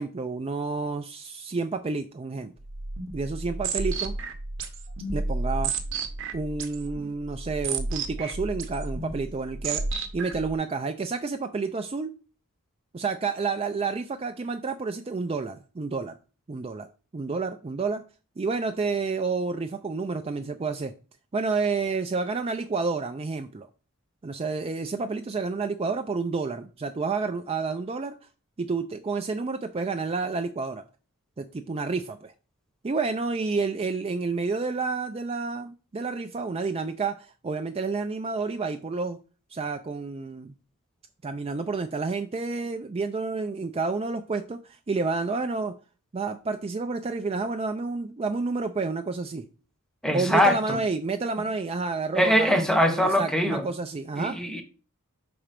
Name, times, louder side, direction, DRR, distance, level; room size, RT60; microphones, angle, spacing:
voice 1, 0.0-2.5 3.1-4.1 5.1-5.7 6.3-9.8 10.1-12.1 12.9-16.1 16.5-16.9 17.1-18.0 18.4-20.9 21.3-23.7 24.2-28.2 28.6-30.8 31.4-32.3 32.8-39.2 39.5-40.5 41.2-45.8 46.1-49.4 50.1-54.4, right 4 dB, 25° right, 0.4 m, -30 dB
sound 1, 2.6-10.5, right 3 dB, 55° right, 0.9 m, -32 dB
voice 2, 50.0-50.8 52.1-53.6 54.2-54.6, equal, 5° left, 0.8 m, -22 dB
5.9 x 4.3 x 5.1 m
head